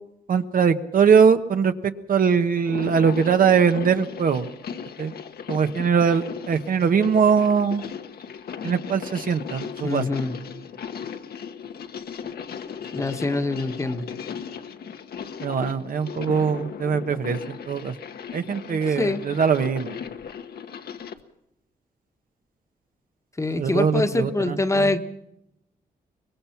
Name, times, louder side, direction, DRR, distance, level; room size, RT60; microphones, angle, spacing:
voice 1, 0.3-4.5 5.0-5.1 5.5-7.8 8.6-10.0 15.4-17.9 18.3-20.0 23.6-24.9, right 6 dB, 60° right, 8 dB, 1.2 m, -21 dB
sound 1, 2.6-21.2, left 7 dB, 75° left, 1.3 m, -37 dB
voice 2, 9.8-10.3 12.9-14.0 18.7-19.2 23.4-25.0, left 2 dB, 20° left, 8 dB, 1.3 m, -24 dB
23.5 x 21.0 x 5.9 m, 0.82 s
cardioid pair, 105°, 16 cm